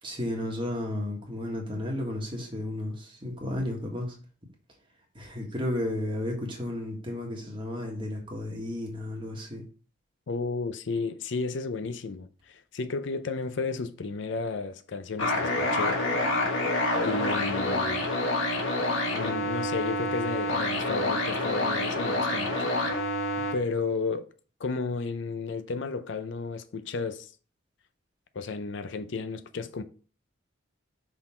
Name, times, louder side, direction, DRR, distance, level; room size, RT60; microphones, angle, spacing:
voice 1, 0.0-4.1 5.1-9.6, left 1 dB, 25° right, 1.6 m, -33 dB
voice 2, 10.3-16.0 17.0-18.1 19.1-22.7 23.5-24.3 24.6-27.3 28.3-29.8, left 4 dB, 65° left, 0.5 m, -33 dB
sound 1, 15.2-23.5, left 2 dB, 80° left, 1.4 m, -27 dB
5.9 x 4.0 x 4.3 m
head